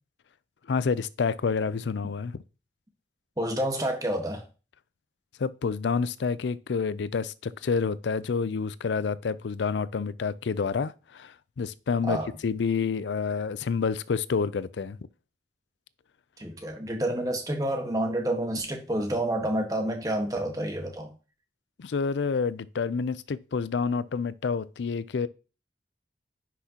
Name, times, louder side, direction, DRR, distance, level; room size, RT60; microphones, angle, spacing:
voice 1, 0.7-2.4 5.4-15.0 21.8-25.3, left 5 dB, 80° left, 0.4 m, -28 dB
voice 2, 3.4-4.4 12.0-12.3 16.4-21.1, right 1 dB, 20° right, 1.4 m, -29 dB
9.8 x 6.1 x 2.9 m
head